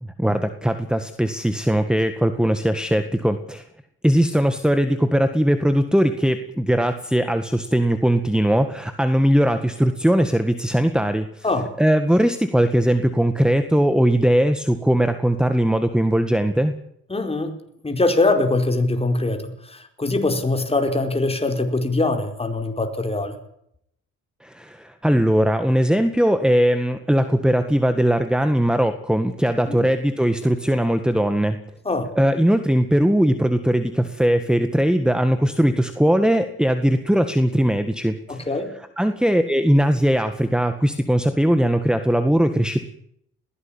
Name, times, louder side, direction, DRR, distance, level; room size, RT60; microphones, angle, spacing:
voice 1, 0.0-3.6 4.0-11.5 11.8-16.7 24.4-31.6 32.2-38.5 39.0-42.8, equal, 5° right, 9 dB, 1.7 m, -20 dB
voice 2, 11.4-11.7 17.1-17.5 17.8-23.4 29.7-29.9 31.8-32.1 38.3-38.7, left 2 dB, 20° left, 5 dB, 4.6 m, -22 dB
21.0 x 16.5 x 8.9 m, 0.73 s
cardioid pair, 90°, 30 cm